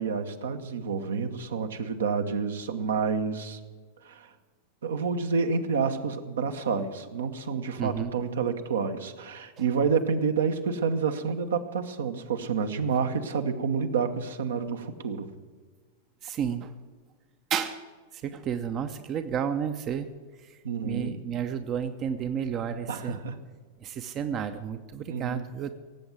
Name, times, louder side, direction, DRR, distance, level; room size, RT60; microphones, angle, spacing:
voice 1, 0.0-3.6 4.0-4.3 4.8-15.3 20.6-21.2 22.9-23.4 25.1-25.4, right 5 dB, 65° right, 7 dB, 1.1 m, -29 dB
voice 2, 7.8-8.1 16.2-16.7 17.5-17.8 18.1-20.1 20.4-20.6 20.8-23.2 23.8-25.7, right 8 dB, 30° right, 9 dB, 0.7 m, -31 dB
17.0 x 8.0 x 7.6 m, 1.5 s
figure-of-eight pair, 90°, 0 cm